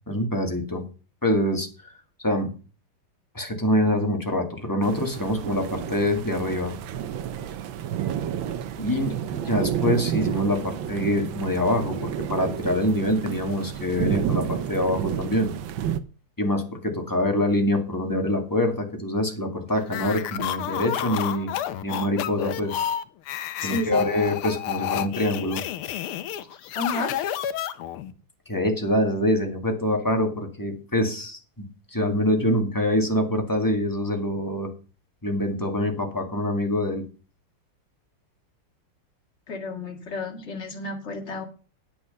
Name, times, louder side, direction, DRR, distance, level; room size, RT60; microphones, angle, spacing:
voice 1, 0.1-0.8 1.2-1.9 2.2-2.5 3.3-6.7 8.8-15.5 16.4-21.5 21.8-22.7 23.6-25.6 28.5-31.7 31.9-34.7 35.2-37.0, left 1 dB, 10° left, 3 dB, 1.9 m, -25 dB
sound 1, 4.8-16.0, right 10 dB, 70° right, 1.5 m, -30 dB
sound 2, 19.9-28.1, left 11 dB, 85° left, 1.7 m, -30 dB
voice 2, 23.6-24.1 26.7-27.1 39.5-41.5, left 2 dB, 30° left, 2 dB, 2.4 m, -31 dB
9.9 x 8.3 x 5.5 m, 0.36 s
omnidirectional pair, 2.4 m